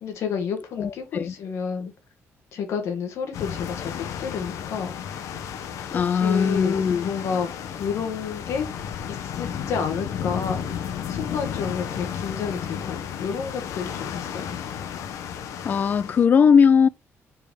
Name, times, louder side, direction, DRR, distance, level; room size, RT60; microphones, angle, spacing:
voice 1, 0.0-1.9 2.5-4.9 5.9-7.5 7.7-8.7 9.1-14.6, left 6 dB, 65° left, 2.0 m, -30 dB
voice 2, 0.8-1.3 5.9-7.1 15.6-16.9, left 6 dB, 35° left, 0.4 m, -19 dB
sound 1, 3.3-16.3, left 8 dB, 90° left, 1.1 m, -33 dB
5.3 x 4.9 x 5.4 m
cardioid pair, 170°, 5 cm